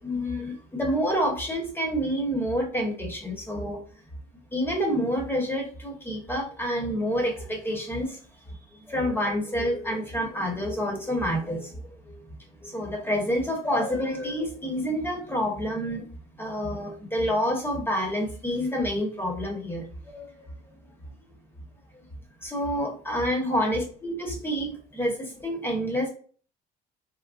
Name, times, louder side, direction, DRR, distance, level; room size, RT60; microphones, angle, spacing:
voice 1, 0.0-3.8 4.5-8.2 8.9-12.2 12.6-16.1 16.4-20.5 22.4-26.1, equal, 15° left, 1 dB, 1.0 m, -28 dB
3.7 x 2.1 x 2.4 m, 0.41 s
cardioid pair, 110°, 17 cm